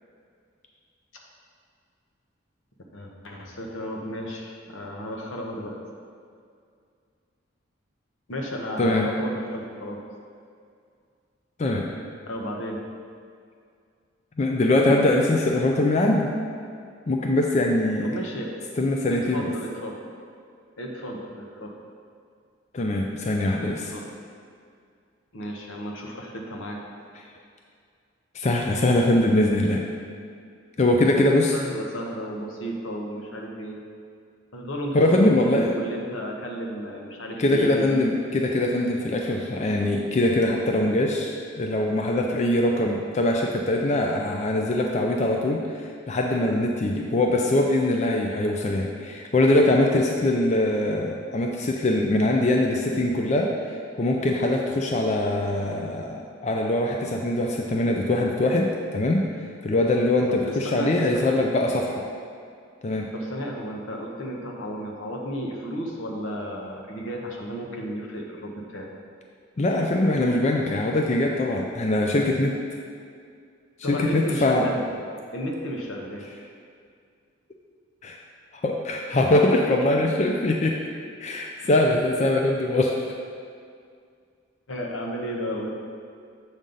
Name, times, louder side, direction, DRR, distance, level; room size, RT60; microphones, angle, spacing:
voice 1, 2.9-5.8 8.3-10.0 12.3-12.8 18.0-18.6 19.1-20.0 20.8-21.7 23.6-24.1 25.3-26.9 31.2-33.8 34.5-37.9 60.3-61.4 63.1-68.9 73.8-75.0 75.3-76.3 84.7-85.7, equal, 80° left, 0 dB, 1.0 m, -33 dB
voice 2, 8.8-9.1 11.6-11.9 14.4-16.3 17.1-18.1 18.8-19.5 22.7-23.9 28.3-29.8 30.8-31.5 34.9-35.7 37.4-59.3 59.6-62.1 62.8-63.1 69.6-72.6 73.9-74.7 78.0-78.2 78.6-80.8 81.2-83.0, left 1 dB, 35° left, 1 dB, 0.4 m, -22 dB
7.4 x 5.3 x 3.9 m, 2.3 s
head